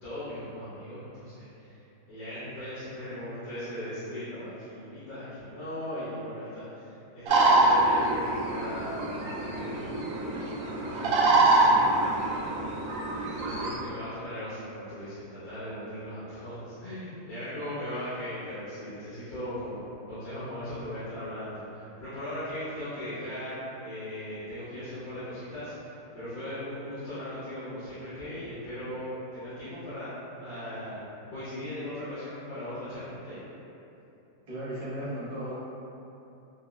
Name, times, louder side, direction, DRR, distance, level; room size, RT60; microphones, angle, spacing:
voice 1, 0.0-12.9 13.3-30.1 30.4-31.0 31.3-33.4, equal, 80° left, -17 dB, 1.9 m, -38 dB
sound 1, 7.3-13.8, right 2 dB, 85° right, 1.4 m, -25 dB
voice 2, 34.5-35.5, right 1 dB, 50° right, -11 dB, 0.5 m, -35 dB
5.5 x 2.0 x 2.3 m, 2.8 s
omnidirectional pair, 2.0 m